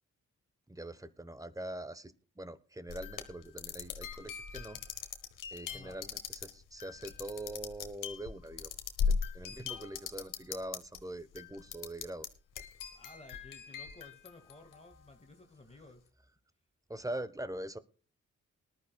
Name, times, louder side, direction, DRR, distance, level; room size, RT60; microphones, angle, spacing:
voice 1, 0.7-4.8 5.5-8.7 9.1-12.3 16.9-17.8, right 1 dB, 10° right, 14 dB, 1.0 m, -43 dB
sound 1, 2.9-11.0 11.3-12.3 12.6-15.0, left 6 dB, 90° left, 1.2 m, -39 dB
voice 2, 5.7-6.0 12.9-16.0, left 2 dB, 20° left, 4 dB, 2.0 m, -55 dB
19.5 x 11.5 x 2.3 m, 0.35 s
cardioid pair, 50°, 31 cm